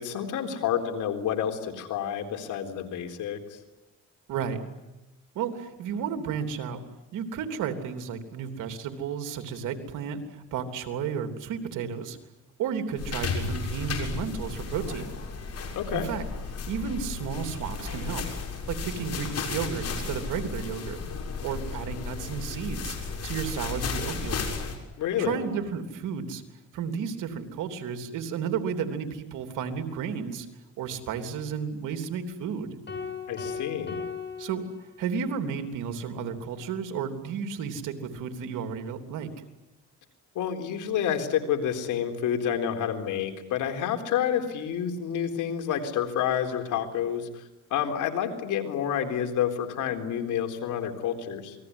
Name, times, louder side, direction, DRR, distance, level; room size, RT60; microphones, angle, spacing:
voice 1, 0.0-3.6 15.8-16.1 25.0-25.4 33.3-34.0 40.3-47.4 47.7-51.6, left 9 dB, 85° left, 5 dB, 4.0 m, -29 dB
voice 2, 4.3-4.6 5.3-6.8 7.1-12.2 12.6-15.1 15.9-16.2 16.7-18.4 18.7-21.0 21.4-24.4 25.2-26.4 26.7-30.5 30.8-32.8 34.4-34.6 35.0-39.3, right 7 dB, 90° right, 7 dB, 3.3 m, -32 dB
sound 1, 13.0-24.8, left 4 dB, 55° left, 6.8 m, -34 dB
sound 2, 32.9-35.3, left 5 dB, 35° left, 7.4 m, -37 dB
28.5 x 20.5 x 9.8 m, 1.0 s
cardioid pair, 90°, 30 cm